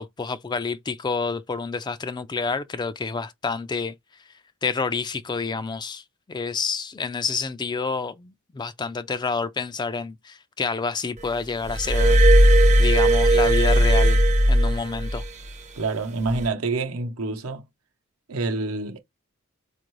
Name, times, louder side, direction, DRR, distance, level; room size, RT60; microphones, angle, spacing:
voice 1, 0.0-3.9 4.6-12.2 12.8-14.2 14.5-15.2, left 4 dB, 20° left, 0.3 m, -28 dB
Glass, 11.7-15.3 16.3-16.5, right 1 dB, 35° right, 0.6 m, -17 dB
voice 2, 15.8-17.6 18.3-19.0, right 3 dB, 80° right, 0.8 m, -27 dB
4.4 x 2.5 x 3.0 m
head